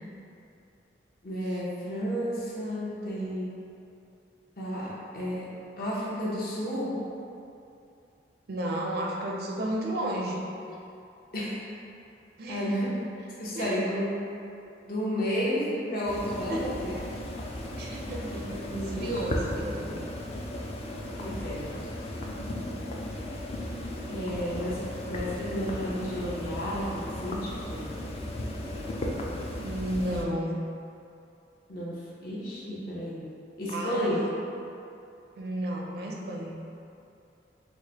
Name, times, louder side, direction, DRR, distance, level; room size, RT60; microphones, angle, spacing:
voice 1, 1.2-3.5 4.6-5.5 5.8-6.9 11.3-11.6 12.5-12.9 13.4-14.1 14.8-16.9 18.3-19.4 21.2-21.7 24.1-24.8 25.1-27.9 31.7-33.2 33.6-34.2, equal, 55° left, -6 dB, 0.8 m, -32 dB
voice 2, 8.5-10.5 12.4-12.8 13.5-13.9 16.5-16.7 17.8-18.4 18.8-19.9 29.6-30.6 33.7-34.4 35.4-36.5, right 1 dB, 60° right, -1 dB, 0.5 m, -32 dB
sound 1, 16.1-30.2, left 1 dB, 35° left, 0.3 m, -35 dB
4.6 x 2.0 x 2.8 m, 2.6 s
head